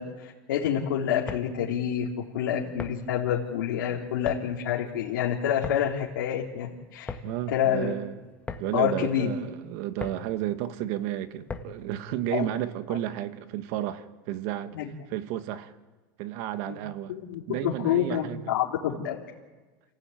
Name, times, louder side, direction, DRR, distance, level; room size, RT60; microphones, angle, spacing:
voice 1, 0.0-2.1 2.3-7.2 7.5-7.9 8.7-9.3 12.3-12.5 14.7-14.9 16.7-16.8 17.1-19.1, left 9 dB, 85° left, 3.4 m, -28 dB
sound 1, 1.1-11.9, left 4 dB, 15° left, 1.7 m, -42 dB
voice 2, 7.2-8.2 8.6-14.8 15.1-15.7 16.2-17.2 17.5-18.5, right 12 dB, 55° right, 1.7 m, -32 dB
29.0 x 15.5 x 9.2 m
supercardioid pair, 145°, 11 cm